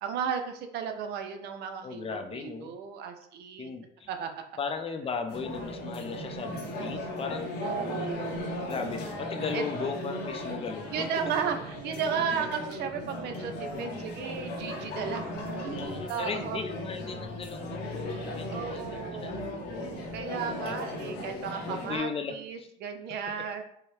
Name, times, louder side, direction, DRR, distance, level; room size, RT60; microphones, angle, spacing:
voice 1, 0.0-3.7 4.1-4.3 7.6-8.7 9.5-9.6 10.9-15.3 15.6-16.6 18.5-19.5 20.1-23.6, right 7 dB, 75° right, 6 dB, 0.5 m, -34 dB
voice 2, 1.8-2.8 3.6-4.1 4.6-7.5 8.6-11.1 15.7-19.5 20.3-20.8 21.7-22.7 23.0-23.1, left 5 dB, 35° left, 6 dB, 0.5 m, -37 dB
sound 1, 5.3-22.0, left 1 dB, 80° left, 0.9 m, -37 dB
4.6 x 2.1 x 3.1 m, 0.68 s
cardioid pair, 110°, 17 cm